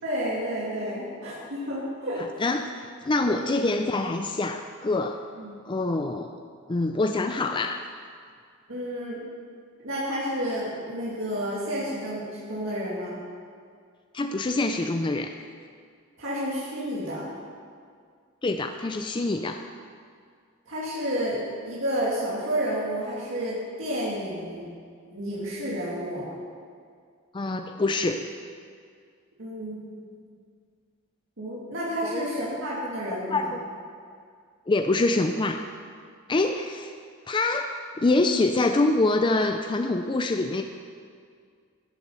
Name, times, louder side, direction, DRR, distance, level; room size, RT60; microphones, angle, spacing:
voice 1, 0.0-2.3 3.2-3.5 5.4-5.6 8.7-9.2 9.8-13.1 16.2-17.3 20.7-24.6 25.1-26.3 29.4-30.0 31.4-33.5, equal, 65° right, -7 dB, 2.5 m, -30 dB
voice 2, 2.4-5.2 5.7-6.3 6.7-7.8 14.1-15.3 18.4-19.6 27.3-28.2 32.0-32.2 33.1-33.6 34.7-35.7 36.3-36.9 37.3-40.6, left 2 dB, 25° left, 6 dB, 0.4 m, -25 dB
12.0 x 8.1 x 6.9 m, 2.1 s
head